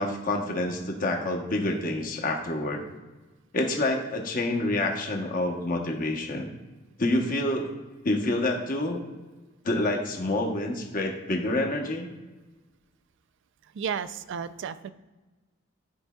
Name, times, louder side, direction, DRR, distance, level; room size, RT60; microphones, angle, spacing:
voice 1, 0.0-2.8 3.5-6.5 7.0-7.7 8.0-9.0 9.6-12.1, left 1 dB, 45° left, 2 dB, 0.9 m, -27 dB
voice 2, 13.7-14.9, right 7 dB, 65° right, 13 dB, 0.4 m, -33 dB
11.0 x 4.5 x 2.3 m, 1.2 s
head